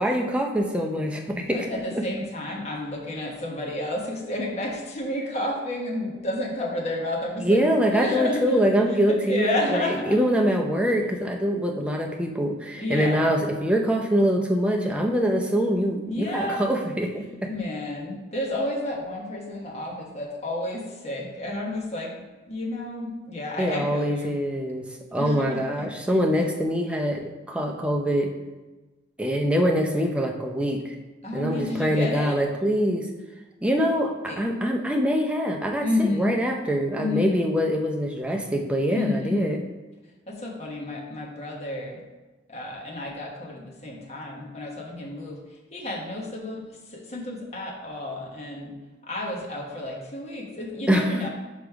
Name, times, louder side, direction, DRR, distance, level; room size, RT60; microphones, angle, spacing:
voice 1, 0.0-1.7 7.4-17.5 23.6-24.8 25.1-28.3 29.2-31.0 31.3-33.1 33.6-39.6 50.9-51.2, equal, 5° right, 2 dB, 0.6 m, -24 dB
voice 2, 1.5-7.6 7.9-8.6 9.1-10.2 12.8-13.3 16.1-16.7 17.5-22.1 22.5-24.3 25.2-25.9 31.2-32.4 34.3-34.4 35.8-36.3 37.0-37.5 38.9-39.6 40.3-42.0 42.5-45.4 45.7-48.7 49.0-51.3, left 1 dB, 30° left, -2 dB, 1.2 m, -31 dB
5.3 x 5.1 x 4.7 m, 1.2 s
head